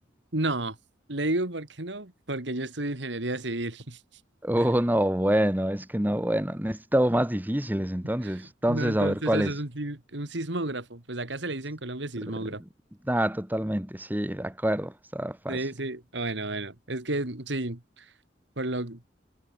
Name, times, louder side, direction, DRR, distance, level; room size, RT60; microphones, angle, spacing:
voice 1, 0.3-0.8 1.1-4.0 4.6-4.7 8.2-8.4 8.7-12.6 15.5-18.0 18.6-19.0, right 2 dB, 70° right, 2.6 m, -32 dB
voice 2, 4.4-9.5 13.1-15.6, right 1 dB, 10° right, 1.3 m, -26 dB
head